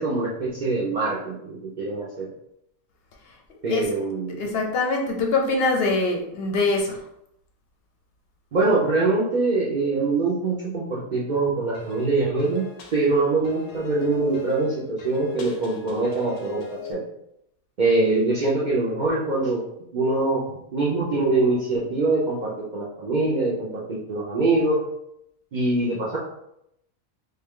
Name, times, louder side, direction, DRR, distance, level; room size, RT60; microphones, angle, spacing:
voice 1, 0.0-2.3 3.6-4.4 8.5-17.0 17.8-19.6 19.9-20.4 20.7-24.8 25.5-26.2, right 3 dB, 65° right, -6 dB, 0.4 m, -23 dB
voice 2, 4.4-7.0, left 3 dB, 55° left, 1 dB, 0.7 m, -23 dB
sound 1, 11.7-16.9, left 5 dB, 85° left, 1.1 m, -43 dB
3.6 x 2.2 x 3.6 m, 0.79 s
omnidirectional pair, 1.5 m